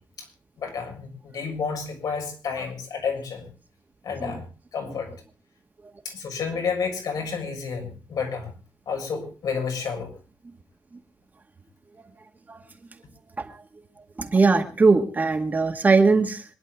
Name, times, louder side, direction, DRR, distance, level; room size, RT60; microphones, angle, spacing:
voice 1, 0.6-3.5 4.0-5.1 6.0-8.5 8.9-10.1, left 5 dB, 85° left, 2 dB, 6.7 m, -30 dB
voice 2, 14.2-16.4, right 4 dB, 25° right, 4 dB, 2.0 m, -20 dB
26.0 x 11.0 x 3.7 m, 0.33 s
wide cardioid pair, 170°, 6 cm